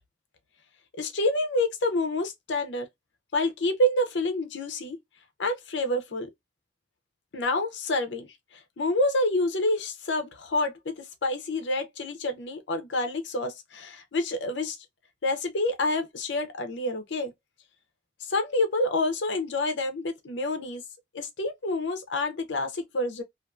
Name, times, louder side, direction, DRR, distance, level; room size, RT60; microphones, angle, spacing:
voice 1, 1.0-2.9 3.3-5.0 5.4-6.3 7.3-8.3 8.5-14.8 15.2-17.3 18.2-20.8 21.1-23.2, left 1 dB, 85° left, 0.6 m, -28 dB
2.5 x 2.3 x 2.5 m
head